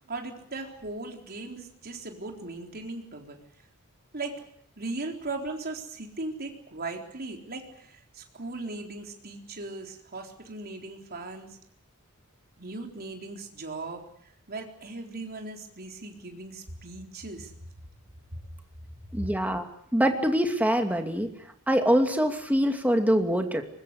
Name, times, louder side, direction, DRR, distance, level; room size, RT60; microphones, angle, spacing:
voice 1, 0.1-3.4 4.1-4.4 4.8-11.6 12.6-14.1 14.5-17.5 19.2-19.3, right 2 dB, 45° right, 2 dB, 4.0 m, -38 dB
voice 2, 19.1-19.6 19.9-21.3 21.7-23.6, equal, 5° right, 4 dB, 2.6 m, -24 dB
24.0 x 21.5 x 8.3 m, 0.67 s
head